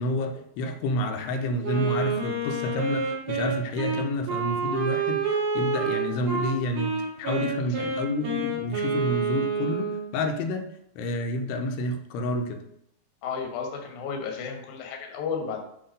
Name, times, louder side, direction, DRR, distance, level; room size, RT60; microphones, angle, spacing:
voice 1, 0.0-6.9 7.2-10.7 11.0-12.6, left 1 dB, 90° left, 5 dB, 2.8 m, -29 dB
Wind instrument woodwind instrument, 1.6-10.1, right 4 dB, 40° right, 2.6 m, -28 dB
voice 2, 13.2-15.6, left 6 dB, 65° left, 2 dB, 2.0 m, -33 dB
7.7 x 4.0 x 5.2 m, 0.75 s
omnidirectional pair, 4.7 m